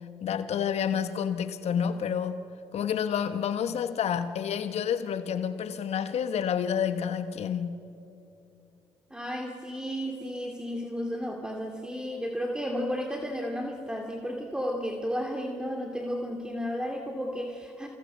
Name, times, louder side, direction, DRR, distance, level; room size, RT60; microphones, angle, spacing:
voice 1, 0.2-2.4 2.7-7.9, left 8 dB, 60° left, 1.3 m, -29 dB
voice 2, 9.1-17.9, equal, 5° right, 2.6 m, -33 dB
28.5 x 27.5 x 5.7 m
hypercardioid pair, 55°, 12 cm